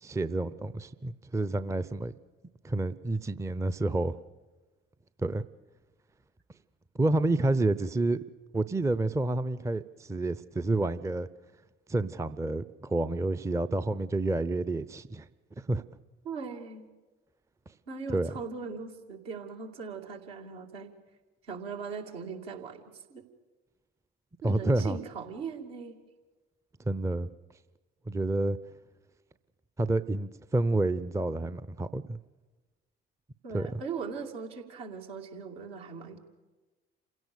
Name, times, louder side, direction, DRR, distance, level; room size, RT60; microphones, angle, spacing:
voice 1, 0.0-2.1 2.6-4.2 5.2-5.5 7.0-8.2 8.5-11.3 11.9-15.3 15.7-15.8 18.1-18.3 24.4-25.0 26.9-27.3 28.1-28.6 29.8-32.2 33.5-33.8, right 2 dB, 10° right, 0.7 m, -29 dB
voice 2, 16.2-16.9 17.9-20.9 21.4-23.3 24.4-26.0 33.4-36.2, right 5 dB, 70° right, 2.7 m, -39 dB
28.0 x 17.0 x 6.9 m
figure-of-eight pair, 55°, 32 cm